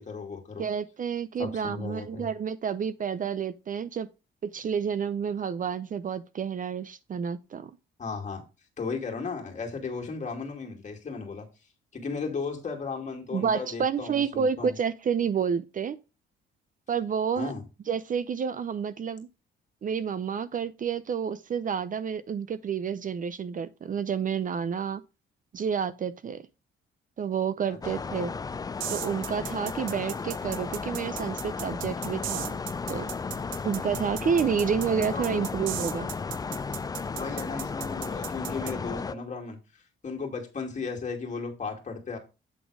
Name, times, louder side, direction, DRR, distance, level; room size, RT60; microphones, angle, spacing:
voice 1, 0.0-0.6 1.4-2.3 8.0-8.4 8.8-11.5 11.9-14.7 17.4-17.6 27.7-28.0 33.4-33.7 35.1-35.5 37.1-42.2, left 4 dB, 35° left, 2.3 m, -35 dB
voice 2, 0.6-4.1 4.4-7.7 13.3-16.0 16.9-17.5 17.9-19.3 19.8-25.0 25.5-26.4 27.2-28.3 28.9-32.6 32.9-33.1 33.6-36.1, right 7 dB, 40° right, 0.6 m, -29 dB
sound 1, 27.8-39.1, left 5 dB, 20° left, 0.3 m, -34 dB
sound 2, 28.8-38.7, right 14 dB, 90° right, 0.5 m, -37 dB
8.3 x 3.9 x 4.7 m
cardioid pair, 90°, 20 cm